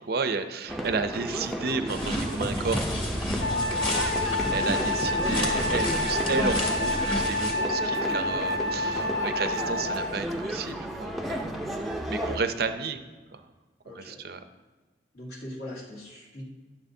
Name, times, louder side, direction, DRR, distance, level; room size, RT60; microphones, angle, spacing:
voice 1, 0.0-3.0 3.7-11.5 11.8-13.0 13.3-13.4 13.9-14.4, right 4 dB, 60° right, 9 dB, 0.5 m, -32 dB
sound 1, 0.7-12.4, equal, ahead, 0.6 m, -33 dB
sound 2, 1.9-7.5, equal, 30° left, 2.0 m, -31 dB
Wind instrument woodwind instrument, 3.4-10.2, left 2 dB, 80° left, 1.9 m, -29 dB
voice 2, 13.8-14.2 15.1-16.4, left 1 dB, 60° left, -5 dB, 1.8 m, -42 dB
11.5 x 6.9 x 2.7 m, 1.3 s
head